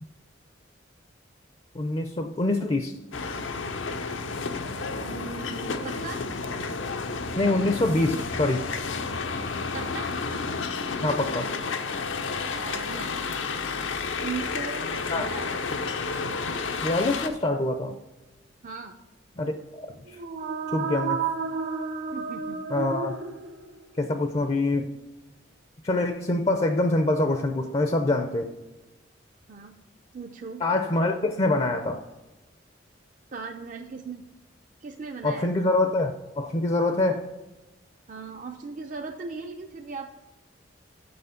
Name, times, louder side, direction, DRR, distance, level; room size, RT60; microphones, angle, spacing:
voice 1, 1.7-2.9 7.3-8.7 11.0-11.5 15.1-15.3 16.8-17.9 19.4-20.0 20.7-21.2 22.7-23.2 24.0-24.9 25.8-28.5 30.6-32.0 35.2-37.2, left 2 dB, 30° left, 7 dB, 0.5 m, -25 dB
sound 1, 3.1-17.3, left 4 dB, 80° left, 0.7 m, -31 dB
voice 2, 5.0-6.2 9.7-10.2 12.5-13.1 14.2-15.6 18.6-18.9 22.1-22.7 29.5-29.8 30.1-30.6 33.3-34.3 34.8-35.7 38.1-40.2, right 4 dB, 40° right, 3 dB, 0.5 m, -38 dB
sound 2, 20.1-23.9, right 5 dB, 80° right, 1.5 m, -31 dB
6.9 x 6.3 x 5.0 m, 1.1 s
head